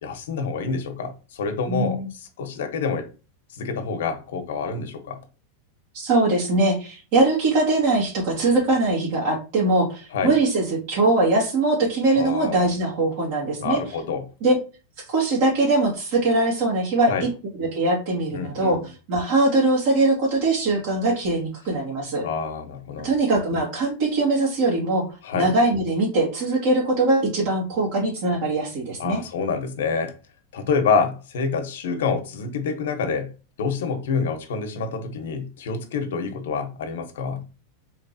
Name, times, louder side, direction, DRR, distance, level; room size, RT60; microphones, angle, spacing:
voice 1, 0.0-2.0 2.4-3.1 3.5-5.2 10.1-10.3 12.2-12.7 13.6-14.3 17.1-17.2 18.3-18.8 22.2-23.1 25.2-25.5 29.0-30.1 30.5-33.3 33.6-37.5, left 5 dB, 80° left, 0.9 m, -27 dB
voice 2, 1.7-2.1 5.9-13.8 14.4-14.6 15.1-17.3 17.6-22.2 23.0-25.1 25.3-29.2, right 2 dB, 50° right, 1.9 m, -21 dB
4.2 x 3.2 x 2.7 m
supercardioid pair, 155°, 0 cm